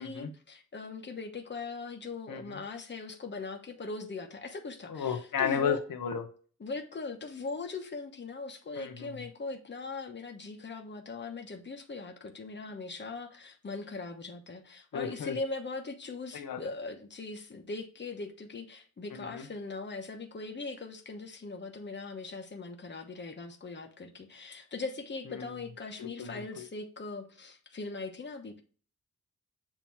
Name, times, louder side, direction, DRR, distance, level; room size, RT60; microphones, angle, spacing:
voice 1, 0.0-5.8 6.6-28.6, left 3 dB, 35° left, 4 dB, 1.0 m, -40 dB
voice 2, 2.3-2.6 4.9-6.3 8.8-9.2 14.9-15.4 16.3-16.6 19.1-19.5 25.3-25.5 26.0-26.6, left 7 dB, 80° left, 5 dB, 0.8 m, -34 dB
7.4 x 2.9 x 4.5 m, 0.39 s
wide cardioid pair, 120°, 32 cm